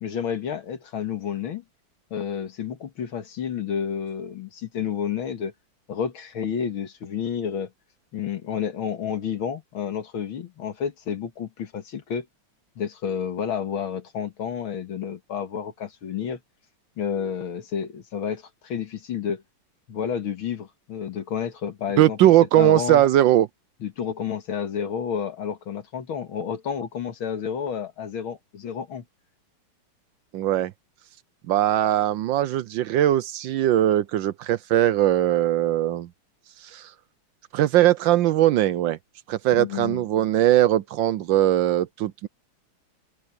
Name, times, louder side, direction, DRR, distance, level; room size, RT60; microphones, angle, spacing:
voice 1, 0.0-1.6 2.1-5.5 5.9-7.7 8.1-12.3 12.8-16.4 17.0-19.4 19.9-22.2 22.5-23.0 23.8-29.0 39.5-40.0, left 8 dB, 70° left, 2.4 m, -30 dB
voice 2, 22.0-23.5 30.3-30.7 31.5-36.1 36.7-36.9 37.5-39.0 39.3-42.3, right 13 dB, 75° right, 1.2 m, -20 dB
open air
omnidirectional pair, 2.4 m